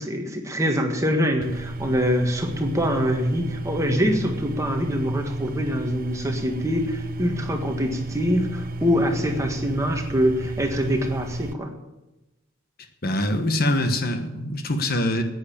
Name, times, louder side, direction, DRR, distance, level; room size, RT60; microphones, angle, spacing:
voice 1, 0.0-11.7, equal, 15° right, 3 dB, 1.6 m, -24 dB
sound 1, 1.4-11.5, right 2 dB, 45° right, 0.5 m, -33 dB
voice 2, 13.0-15.2, left 1 dB, 45° left, 7 dB, 1.2 m, -24 dB
10.5 x 9.4 x 8.8 m, 1.0 s
head